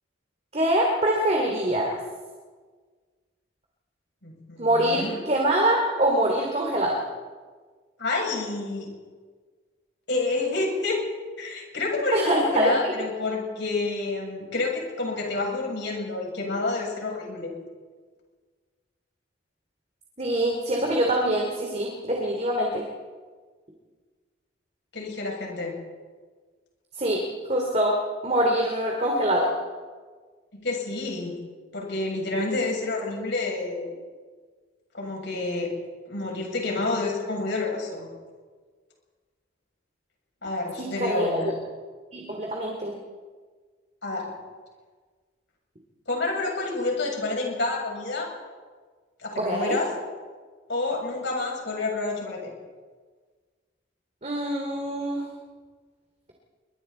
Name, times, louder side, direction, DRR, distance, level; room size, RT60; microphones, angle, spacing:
voice 1, 0.5-2.0 4.6-7.0 12.1-12.9 20.2-22.9 26.9-27.2 27.5-28.0 28.2-29.5 40.8-41.4 42.1-43.0 49.4-49.8 54.2-55.3, right 1 dB, 35° right, 0 dB, 2.8 m, -24 dB
voice 2, 4.2-5.2 8.0-8.9 10.1-11.0 11.4-17.5 24.9-25.7 30.5-31.4 31.7-33.9 34.9-35.7 36.1-38.1 40.4-41.5 44.0-44.4 46.1-48.3 49.2-49.9 50.7-52.5, left 3 dB, 60° left, -1 dB, 7.6 m, -29 dB
27.0 x 24.0 x 4.4 m, 1.5 s
head